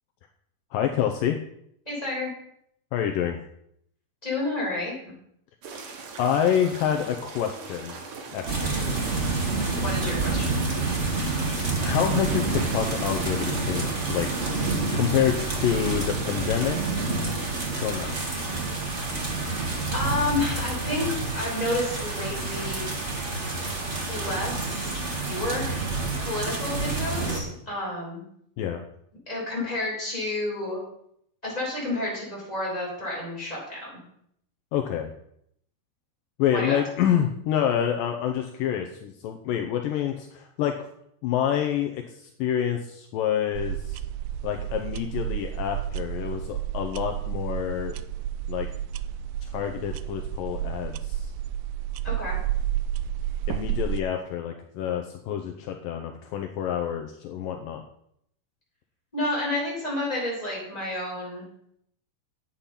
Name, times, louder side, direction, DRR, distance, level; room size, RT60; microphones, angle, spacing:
voice 1, 0.7-1.4 2.9-3.4 6.2-8.0 8.3-9.0 11.8-14.3 14.9-16.8 17.8-18.2 28.6-28.8 34.7-35.1 36.4-40.8 41.2-44.0 44.4-48.0 48.5-48.7 49.5-51.3 53.5-57.8, left 9 dB, 75° left, 4 dB, 2.3 m, -27 dB
voice 2, 1.8-2.3 4.2-4.9 9.7-10.6 19.9-21.1 21.3-22.9 24.1-25.8 26.2-28.2 29.3-30.8 31.4-34.0 36.5-36.8 52.0-52.4 59.1-61.5, left 2 dB, 10° left, -6 dB, 5.8 m, -30 dB
sound 1, 5.6-18.1, right 4 dB, 60° right, 3.0 m, -39 dB
sound 2, 8.5-27.4, right 3 dB, 30° right, 1.4 m, -28 dB
sound 3, 43.5-54.0, right 11 dB, 80° right, 2.2 m, -31 dB
10.5 x 8.6 x 5.8 m, 0.72 s
omnidirectional pair, 4.3 m